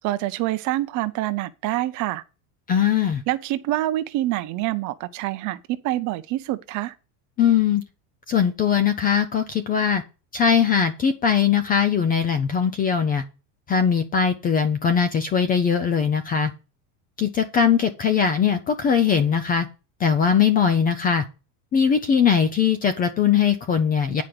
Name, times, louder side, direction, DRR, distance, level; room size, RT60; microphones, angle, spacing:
voice 1, 0.0-2.2 3.3-6.9, right 16 dB, 40° right, 0.7 m, -26 dB
voice 2, 2.7-3.2 7.4-7.8 8.3-10.0 10.3-13.2 13.7-16.5 17.2-19.7 20.0-21.2 21.7-24.2, left 7 dB, 20° left, 0.4 m, -20 dB
9.5 x 5.1 x 5.9 m
supercardioid pair, 145°, 47 cm